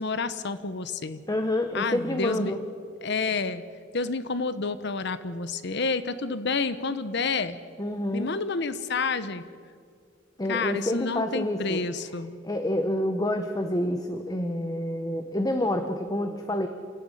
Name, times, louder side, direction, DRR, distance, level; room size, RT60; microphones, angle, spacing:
voice 1, 0.0-1.2 1.7-2.6 3.0-3.6 3.9-7.6 8.1-9.4 10.5-12.4, left 4 dB, 60° left, 13 dB, 1.0 m, -29 dB
voice 2, 1.3-2.6 7.8-8.3 10.4-11.8 12.4-16.7, left 1 dB, 20° left, 6 dB, 1.1 m, -28 dB
28.0 x 14.5 x 9.9 m, 2.2 s
head